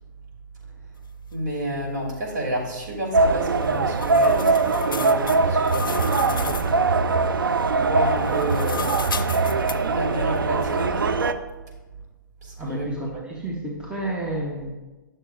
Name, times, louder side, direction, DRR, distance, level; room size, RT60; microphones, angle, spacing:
voice 1, 1.3-6.8 7.7-9.2 9.8-11.0 12.4-13.0 14.3-14.4, right 1 dB, 55° right, -1 dB, 2.5 m, -30 dB
sound 1, 3.1-11.3, right 3 dB, 90° right, 0.5 m, -22 dB
sound 2, 3.4-6.7 8.1-9.8, left 5 dB, 90° left, 0.4 m, -34 dB
voice 2, 12.6-14.7, right 1 dB, 10° right, -3 dB, 0.9 m, -30 dB
9.4 x 6.7 x 2.5 m, 1.1 s
hypercardioid pair, 130°, 11 cm